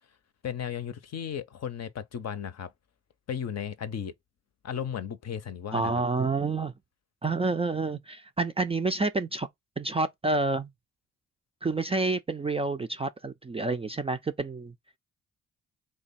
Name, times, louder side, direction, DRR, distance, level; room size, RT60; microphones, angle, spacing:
voice 1, 0.4-2.7 3.3-4.1 4.6-5.9, left 8 dB, 50° left, 0.6 m, -35 dB
voice 2, 5.7-6.7 7.2-9.5 9.8-10.7 11.6-14.7, right 3 dB, 20° right, 0.3 m, -28 dB
3.1 x 2.2 x 4.1 m
hypercardioid pair, 45°, 34 cm